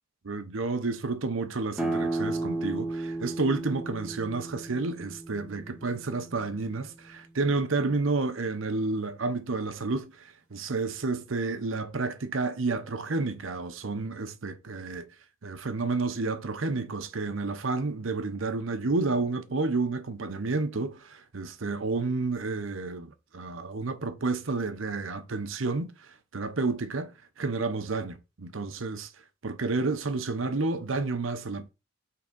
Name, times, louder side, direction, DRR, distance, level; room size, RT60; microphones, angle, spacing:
voice 1, 0.2-10.1 10.5-15.1 15.4-25.9 26.3-27.1 27.4-29.1 29.4-31.7, right 3 dB, 85° right, 0.8 m, -30 dB
sound 1, 1.8-7.1, right 2 dB, 5° right, 1.1 m, -34 dB
5.7 x 3.7 x 5.3 m
head